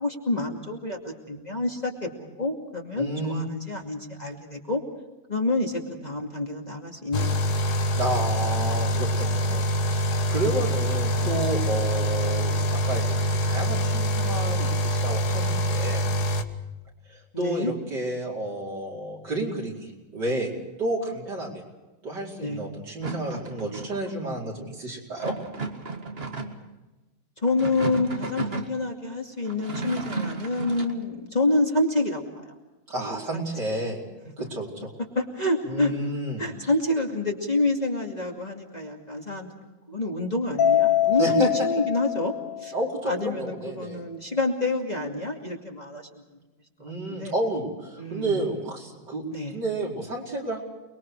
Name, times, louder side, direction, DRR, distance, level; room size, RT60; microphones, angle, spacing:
voice 1, 0.0-4.8 5.3-7.5 11.2-11.6 17.3-17.7 22.4-22.7 23.7-23.8 27.4-32.4 33.3-33.5 34.4-34.5 35.1-35.9 36.4-39.5 39.9-42.3 42.6-42.7 43.1-46.1 47.1-47.3 48.0-48.4 49.3-49.6, left 2 dB, 20° left, 0 dB, 2.5 m, -28 dB
voice 2, 3.0-3.5 8.0-16.0 17.1-20.5 20.8-21.6 22.0-25.4 32.9-34.0 34.4-34.9 35.6-36.5 41.2-41.7 42.7-44.0 46.8-49.2 49.5-50.6, right 1 dB, 60° right, -2 dB, 5.4 m, -31 dB
sound 1, 7.1-16.4, equal, 60° left, 1.8 m, -25 dB
sound 2, 23.0-24.1 25.2-26.7 27.4-28.8 29.4-31.0, right 3 dB, 30° right, 1.9 m, -34 dB
Mallet percussion, 40.6-43.0, left 11 dB, 75° left, 1.7 m, -24 dB
29.5 x 22.0 x 4.8 m, 1.1 s
omnidirectional pair, 2.0 m